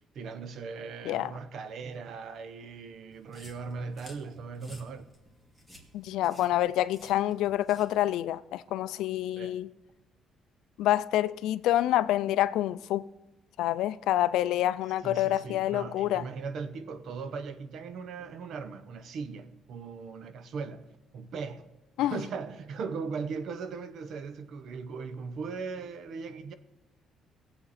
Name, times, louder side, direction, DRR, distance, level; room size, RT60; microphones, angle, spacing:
voice 1, 0.1-5.1 9.4-9.6 15.0-20.9 21.1-21.7 22.0-26.5, right 5 dB, 60° right, 0.8 m, -39 dB
sound 1, 3.1-8.2, equal, 15° right, 1.8 m, -54 dB
voice 2, 5.9-9.7 10.8-13.1 13.6-16.2 22.0-22.2, left 13 dB, 90° left, 0.4 m, -27 dB
19.5 x 7.8 x 4.2 m
cardioid pair, 140°, 0 cm